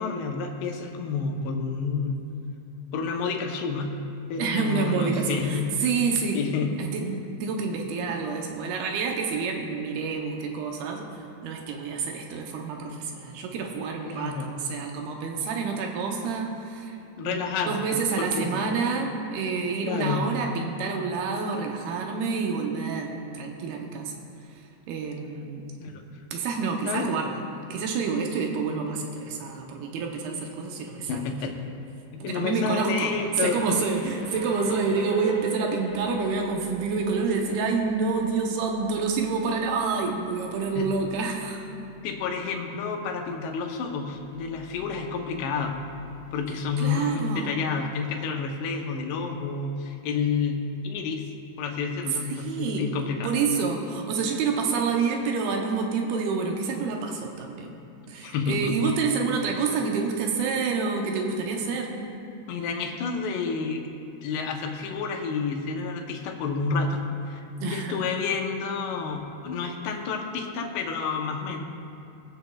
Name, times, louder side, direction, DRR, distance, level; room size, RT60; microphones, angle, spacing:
voice 1, 0.0-2.2 2.9-3.9 4.3-5.7 6.3-6.8 14.1-14.5 17.2-18.5 19.8-20.3 25.8-26.0 26.8-27.2 31.1-31.6 32.1-33.6 40.8-40.9 42.0-45.7 46.3-51.3 51.6-53.3 58.2-59.0 62.5-63.9 64.2-71.6, left 5 dB, 90° left, 2 dB, 3.1 m, -29 dB
voice 2, 4.4-6.4 6.8-11.1 11.4-17.0 17.2-24.1 24.9-25.7 26.3-27.4 27.7-31.3 32.2-33.1 33.4-41.7 46.8-47.5 52.1-52.9 53.2-57.8 58.1-62.1 67.6-68.0, right 5 dB, 75° right, 2 dB, 2.6 m, -28 dB
Train, 32.9-38.2, left 1 dB, 35° left, 1.7 m, -41 dB
sound 1, 35.9-46.5, equal, 60° left, 1.5 m, -49 dB
22.5 x 7.7 x 2.3 m, 2.7 s
omnidirectional pair, 4.7 m